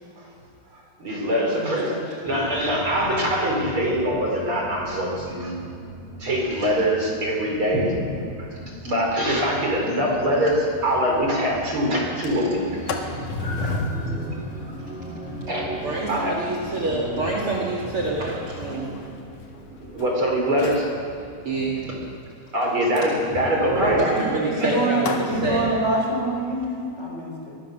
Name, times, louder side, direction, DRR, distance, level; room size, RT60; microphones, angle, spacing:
voice 1, 1.0-5.5 6.2-8.1 8.8-12.6 13.4-13.8 15.5-15.7 16.1-16.4 19.9-20.9 21.8-21.9 22.5-24.0 24.6-24.7, equal, 25° right, -1 dB, 5.0 m, -23 dB
voice 2, 1.5-2.1 23.8-27.6, right 1 dB, 15° left, -1 dB, 3.7 m, -26 dB
sound 1, 2.3-21.3, right 1 dB, ahead, 4.8 m, -39 dB
Sliding door, 10.5-10.6 10.9-11.0 11.4-11.7 12.0-20.0 20.5-21.0 23.0-25.3, left 2 dB, 60° left, 2.3 m, -35 dB
voice 3, 15.8-19.0 21.4-21.8 24.0-25.7, right 3 dB, 45° right, -3 dB, 1.8 m, -26 dB
24.0 x 22.0 x 6.8 m, 2.5 s
omnidirectional pair, 5.8 m